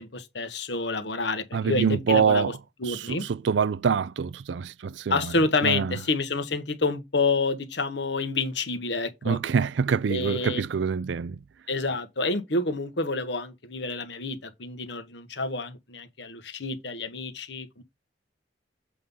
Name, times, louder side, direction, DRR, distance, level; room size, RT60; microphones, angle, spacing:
voice 1, 0.0-2.5 2.8-3.2 5.1-9.4 10.1-10.6 11.7-17.8, left 3 dB, 70° left, 1.3 m, -28 dB
voice 2, 1.5-2.6 2.8-5.4 5.6-5.9 9.2-11.4, right 6 dB, 75° right, 0.4 m, -25 dB
7.6 x 3.8 x 5.5 m
head